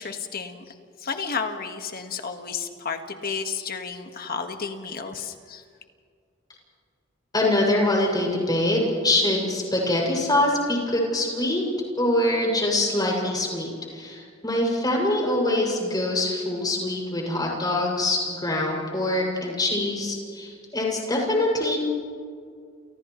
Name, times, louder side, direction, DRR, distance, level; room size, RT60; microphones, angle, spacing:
voice 1, 0.0-5.6, left 5 dB, 50° left, 5 dB, 1.7 m, -32 dB
voice 2, 7.3-11.6 12.0-21.8, left 1 dB, 20° left, -2 dB, 6.8 m, -24 dB
30.0 x 29.5 x 3.2 m, 2.1 s
head